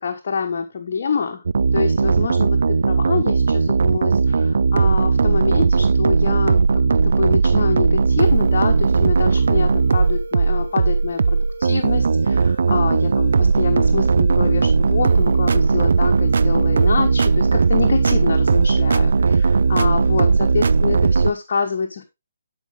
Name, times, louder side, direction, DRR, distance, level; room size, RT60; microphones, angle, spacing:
voice 1, 0.0-1.4 1.7-22.1, left 5 dB, 45° left, 1 dB, 1.2 m, -26 dB
sound 1, 1.5-21.3, right 4 dB, 60° right, 0.4 m, -17 dB
12.5 x 5.0 x 3.5 m, 0.23 s
figure-of-eight pair, 140°, 0 cm